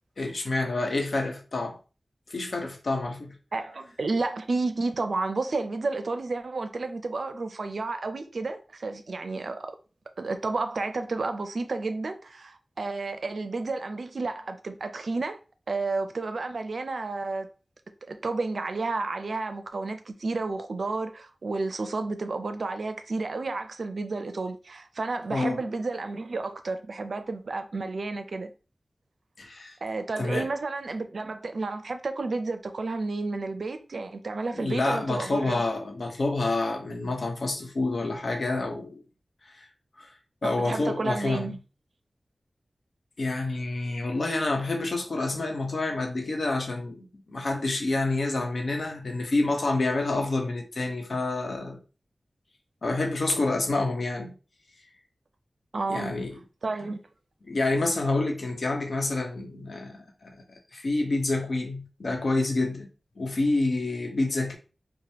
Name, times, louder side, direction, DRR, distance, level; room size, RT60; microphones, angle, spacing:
voice 1, 0.2-1.8 2.3-3.3 25.3-25.6 29.4-29.7 30.2-30.5 34.5-39.0 39.4-39.7 40.0-40.1 40.4-41.5 43.2-51.8 52.8-54.3 55.9-56.4 57.4-62.9 63.2-64.5, left 2 dB, 75° left, 0.9 m, -28 dB
voice 2, 3.5-9.8 10.2-15.4 15.7-17.5 18.0-28.5 29.8-35.6 40.4-41.6 55.7-56.1 56.6-57.0, right 3 dB, 80° right, 0.5 m, -31 dB
4.8 x 2.2 x 2.8 m
wide cardioid pair, 60°, 0 cm